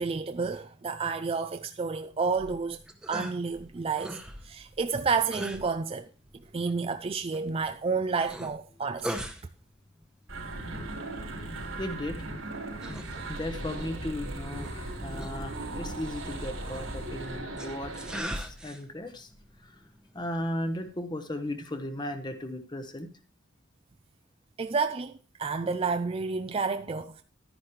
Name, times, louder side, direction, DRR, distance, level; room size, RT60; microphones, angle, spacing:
voice 1, 0.0-2.8 3.1-4.2 4.4-6.1 6.5-9.3 24.6-27.2, right 4 dB, 30° right, 0.4 m, -30 dB
sound 1, 2.3-21.0, equal, 5° right, 0.9 m, -44 dB
sound 2, 10.3-18.2, right 2 dB, 85° right, 3.6 m, -37 dB
voice 2, 11.7-12.2 13.3-19.3 19.6-19.8 20.1-23.1, left 1 dB, 20° left, 1.0 m, -36 dB
11.5 x 10.0 x 3.2 m
head